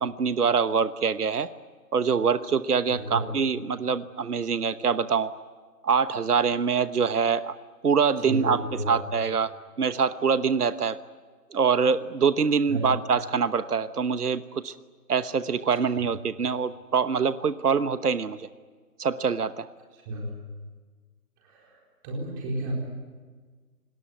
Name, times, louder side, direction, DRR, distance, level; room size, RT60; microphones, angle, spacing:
voice 1, 0.0-1.5 1.9-5.3 5.8-7.6 7.8-8.6 8.9-9.5 9.8-11.0 11.5-14.7 15.1-18.5 19.0-19.7, right 6 dB, 70° right, 13 dB, 1.2 m, -24 dB
voice 2, 2.9-3.3 8.2-8.9 9.3-9.4 12.7-12.8 15.9-16.0 19.9-20.3 21.4-21.8 22.0-22.7, right 2 dB, 15° right, -1 dB, 4.3 m, -32 dB
29.5 x 19.0 x 9.8 m, 1.5 s
figure-of-eight pair, 165°, 47 cm